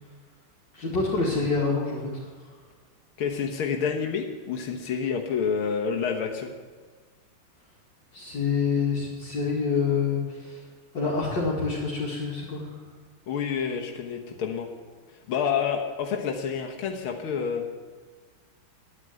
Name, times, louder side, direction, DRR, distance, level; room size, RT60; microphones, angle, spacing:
voice 1, 0.7-2.2 8.1-10.6 10.9-12.7, left 4 dB, 60° left, -6 dB, 2.9 m, -27 dB
voice 2, 3.2-6.5 13.3-14.7 15.3-17.6, left 6 dB, 85° left, 2 dB, 2.1 m, -28 dB
9.9 x 9.9 x 9.2 m, 1.5 s
omnidirectional pair, 2.3 m